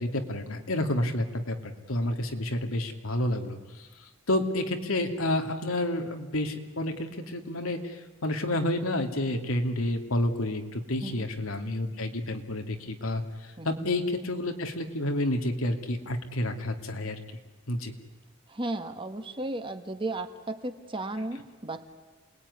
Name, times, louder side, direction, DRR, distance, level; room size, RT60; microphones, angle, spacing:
voice 1, 0.0-17.2 17.7-17.9, left 1 dB, 85° left, 5 dB, 2.6 m, -30 dB
voice 2, 13.6-13.9 18.5-21.9, right 2 dB, 25° right, 8 dB, 1.5 m, -35 dB
28.0 x 20.0 x 9.8 m, 1.3 s
head